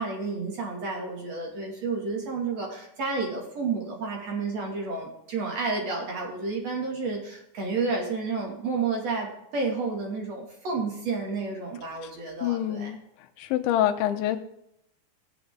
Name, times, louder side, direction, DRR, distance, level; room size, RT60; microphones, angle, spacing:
voice 1, 0.0-12.9, right 4 dB, 45° right, -1 dB, 2.9 m, -31 dB
voice 2, 12.4-13.0 13.4-14.4, left 12 dB, 90° left, 6 dB, 3.2 m, -26 dB
17.5 x 8.0 x 3.8 m, 0.78 s
omnidirectional pair, 5.3 m